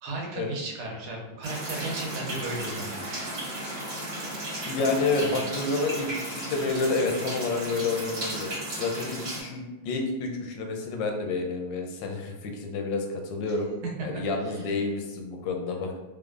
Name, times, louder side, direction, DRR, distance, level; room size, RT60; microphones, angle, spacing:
voice 1, 0.0-3.3 13.5-13.6 14.0-14.6, right 2 dB, 90° right, -1 dB, 1.7 m, -35 dB
sound 1, 1.4-9.4, right 1 dB, 50° right, 1.2 m, -35 dB
voice 2, 4.7-13.7 14.0-16.0, left 3 dB, 75° left, 3 dB, 1.1 m, -29 dB
3.7 x 3.3 x 2.4 m, 1.1 s
omnidirectional pair, 2.3 m